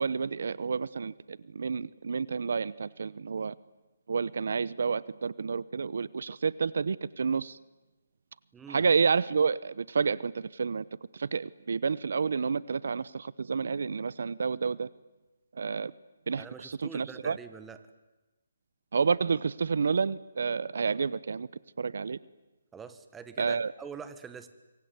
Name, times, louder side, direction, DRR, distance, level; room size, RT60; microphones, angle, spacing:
voice 1, 0.0-3.5 4.1-7.6 8.7-10.8 11.1-14.9 15.6-15.9 16.3-17.4 18.9-21.5 21.8-22.2 23.4-23.7, right 5 dB, 70° right, 20 dB, 0.8 m, -29 dB
voice 2, 8.5-8.8 16.4-17.8 22.7-24.5, right 6 dB, 10° right, 10 dB, 1.5 m, -45 dB
25.5 x 23.0 x 9.6 m, 1.1 s
hypercardioid pair, 160°, 0 cm